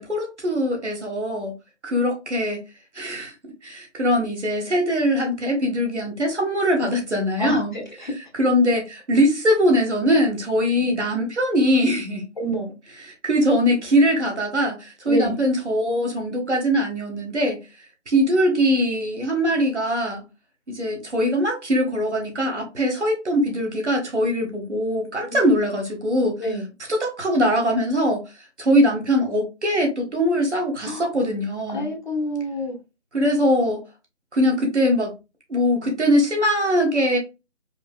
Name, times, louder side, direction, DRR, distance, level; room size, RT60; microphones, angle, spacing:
voice 1, 0.0-1.5 1.8-2.6 2.9-3.3 3.6-7.8 8.4-12.3 13.2-17.6 18.1-20.2 20.7-26.4 26.9-28.2 28.6-31.9 33.1-33.8 34.3-35.1 35.5-37.2, equal, 70° right, 1.6 m, -21 dB
voice 2, 7.4-8.1 10.8-10.9 12.4-12.7 15.0-15.4 26.4-26.7 30.8-31.1 31.7-32.7, right 1 dB, 40° left, 1.0 m, -28 dB
4.7 x 2.8 x 2.2 m
figure-of-eight pair, 155°, 36 cm